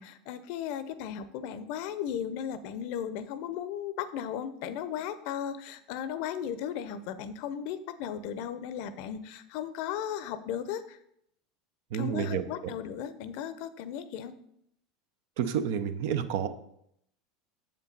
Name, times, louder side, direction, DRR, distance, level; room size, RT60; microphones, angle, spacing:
voice 1, 0.0-11.0 11.9-14.3, left 9 dB, 65° left, 13 dB, 0.6 m, -36 dB
voice 2, 11.9-12.7 15.4-16.5, right 8 dB, 70° right, 11 dB, 0.6 m, -30 dB
7.3 x 5.3 x 4.1 m, 0.73 s
hypercardioid pair, 90°, 0 cm